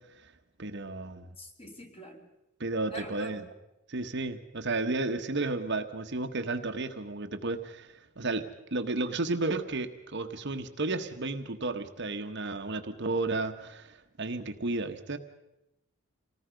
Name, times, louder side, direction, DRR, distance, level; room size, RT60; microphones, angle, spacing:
voice 1, 0.6-1.3 2.6-3.4 3.9-15.2, right 2 dB, 55° right, 6 dB, 1.3 m, -33 dB
voice 2, 1.4-2.3 2.9-3.5, equal, 30° left, 2 dB, 3.0 m, -44 dB
27.0 x 19.0 x 5.2 m, 0.90 s
head